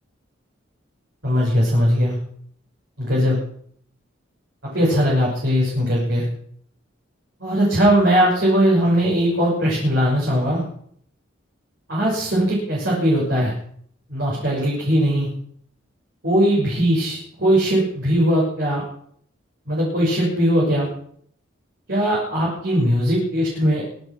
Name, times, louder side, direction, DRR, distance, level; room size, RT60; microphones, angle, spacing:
voice 1, 1.2-2.1 3.0-3.4 4.7-6.2 7.4-10.6 11.9-13.5 14.1-15.3 16.2-18.8 19.7-20.9 21.9-23.8, equal, 60° right, -5 dB, 6.2 m, -19 dB
24.0 x 8.2 x 6.2 m, 0.65 s
head